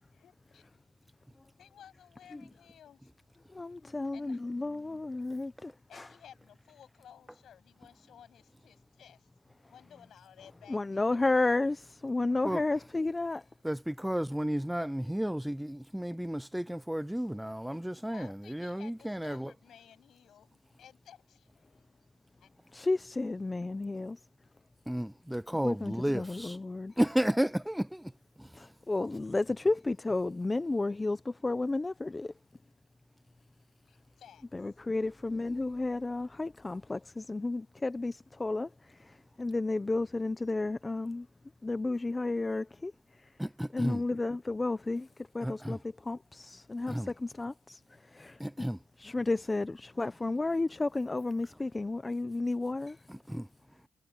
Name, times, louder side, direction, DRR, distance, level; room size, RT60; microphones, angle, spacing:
voice 1, 0.1-0.8 1.6-3.1 4.1-4.4 5.9-9.3 9.7-11.1 18.1-22.1 22.4-22.5 33.9-34.7, left 9 dB, 65° left, 7.9 m, -56 dB
voice 2, 3.5-6.1 10.7-13.4 22.7-24.2 25.6-26.9 28.5-32.3 34.5-41.3 41.6-42.9 43.7-48.7 49.0-53.0, left 2 dB, 20° left, 0.9 m, -32 dB
voice 3, 13.6-19.5 24.9-26.6 27.0-28.1 28.4-28.7 43.4-44.0 45.4-45.8 46.9-47.1 48.4-48.8 53.1-53.5, equal, 5° right, 0.4 m, -33 dB
cardioid pair, 90°, 0 cm